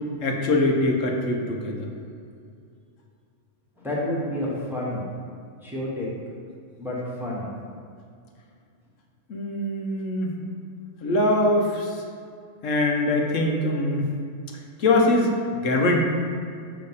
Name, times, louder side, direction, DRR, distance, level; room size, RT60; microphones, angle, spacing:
voice 1, 0.2-1.9 9.3-10.4 11.0-12.0 12.6-14.1 14.8-16.0, left 2 dB, 80° left, 0 dB, 1.1 m, -23 dB
voice 2, 3.8-5.0 5.6-6.1 6.8-7.5, left 1 dB, ahead, -5 dB, 1.0 m, -29 dB
6.7 x 3.1 x 5.4 m, 2.3 s
omnidirectional pair, 1.3 m